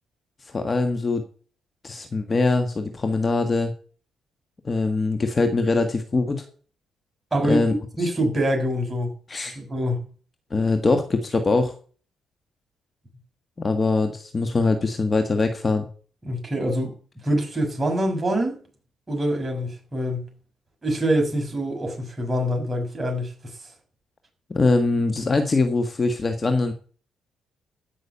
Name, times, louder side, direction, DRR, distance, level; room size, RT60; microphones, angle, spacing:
voice 1, 0.5-1.2 1.8-3.7 4.6-6.4 7.5-7.7 9.3-9.6 10.5-11.7 13.6-15.9 24.5-26.7, left 3 dB, 30° left, 1.6 m, -22 dB
voice 2, 7.3-7.6 8.0-9.1 9.6-10.1 16.2-16.9 17.2-18.6 19.1-20.3 20.8-23.6, equal, 25° right, 5.9 m, -25 dB
16.0 x 6.2 x 7.0 m
cardioid pair, 90°, 0 cm